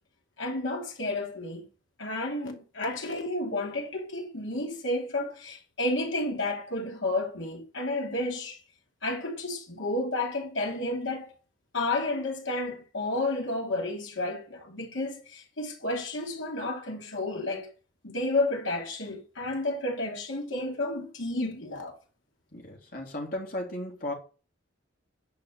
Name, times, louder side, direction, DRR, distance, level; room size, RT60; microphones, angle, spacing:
voice 1, 0.4-1.7 2.0-8.6 9.0-11.3 11.7-17.7 18.0-22.0, left 2 dB, 80° left, 2.8 m, -31 dB
voice 2, 22.5-24.1, left 1 dB, 45° left, 3.4 m, -35 dB
10.5 x 4.8 x 6.5 m
head